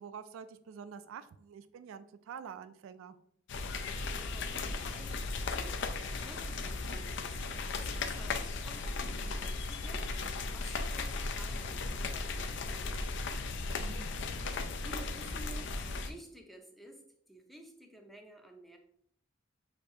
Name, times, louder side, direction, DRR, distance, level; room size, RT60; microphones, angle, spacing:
voice 1, 0.0-3.2 13.7-14.2, right 7 dB, 75° right, 12 dB, 0.3 m, -47 dB
sound 1, 3.5-16.1, left 3 dB, 60° left, 0.4 m, -36 dB
voice 2, 3.8-14.0 14.3-17.0 17.3-18.8, right 1 dB, ahead, 3 dB, 0.5 m, -53 dB
6.6 x 2.6 x 2.6 m, 0.68 s
head